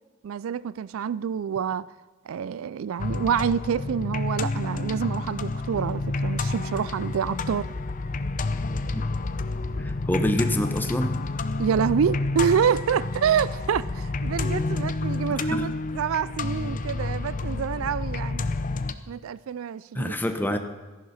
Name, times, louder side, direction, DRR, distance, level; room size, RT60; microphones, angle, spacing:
voice 1, 0.2-1.9 2.3-7.7 11.6-18.5 19.1-20.2 20.5-20.6, right 7 dB, 85° right, 0.4 m, -27 dB
sound 1, 3.0-18.9, left 3 dB, 40° left, 0.6 m, -29 dB
voice 2, 9.8-11.1 15.3-15.7 19.9-20.6, left 1 dB, 10° left, 0.9 m, -27 dB
14.0 x 11.0 x 5.7 m
head